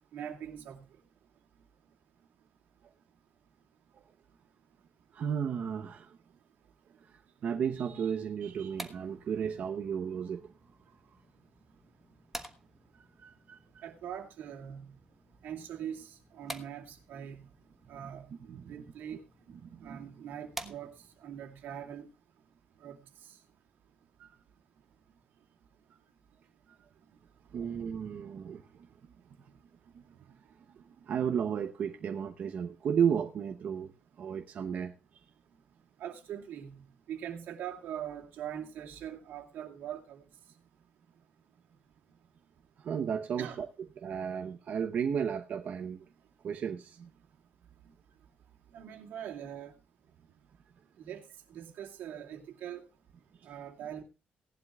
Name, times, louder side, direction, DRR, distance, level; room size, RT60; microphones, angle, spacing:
voice 1, 0.1-0.9 13.8-15.0 15.4-17.5 17.9-18.3 18.7-19.2 19.8-22.1 22.8-23.4 36.0-40.2 43.4-43.6 48.7-49.7 51.0-51.2 51.5-52.8 53.4-54.0, right 9 dB, 80° right, 2.5 m, -42 dB
voice 2, 5.1-6.2 7.0-10.5 13.2-13.8 18.0-18.1 18.4-18.7 19.5-20.0 24.2-24.3 27.5-28.9 29.9-30.0 30.4-33.9 34.2-34.9 42.8-43.7 44.0-46.1 46.4-47.1 53.4-53.5, right 7 dB, 50° right, 0.9 m, -34 dB
sound 1, 8.4-21.3, right 1 dB, 5° right, 1.3 m, -50 dB
18.5 x 11.5 x 2.4 m
cardioid pair, 145°, 3 cm